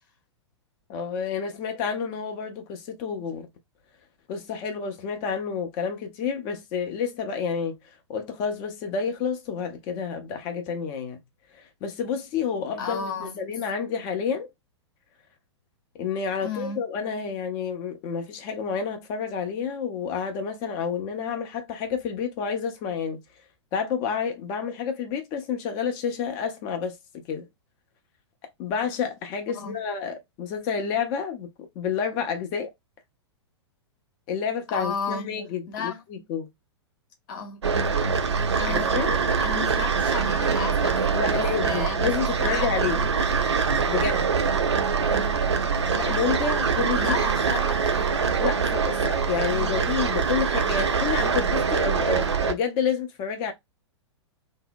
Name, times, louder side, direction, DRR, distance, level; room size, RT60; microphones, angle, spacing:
voice 1, 0.9-3.5 4.3-11.2 11.5-14.5 16.0-23.2 23.7-27.0 27.3-27.5 28.6-31.5 31.8-32.7 34.3-36.5 38.7-39.2 41.1-43.0 43.9-44.2 45.9-47.2 48.4-53.5, left 6 dB, 30° left, 0.4 m, -29 dB
voice 2, 12.8-13.4 16.4-16.8 29.5-29.8 34.7-35.3 35.7-36.0 37.3-37.6 38.5-39.0 39.4-41.0 41.3-43.3 44.8-45.6 47.0-48.2 49.4-49.9, left 5 dB, 45° left, 0.8 m, -34 dB
sound 1, 37.6-52.5, right 5 dB, 70° right, 0.5 m, -24 dB
2.7 x 2.0 x 2.5 m
figure-of-eight pair, 105°, 15 cm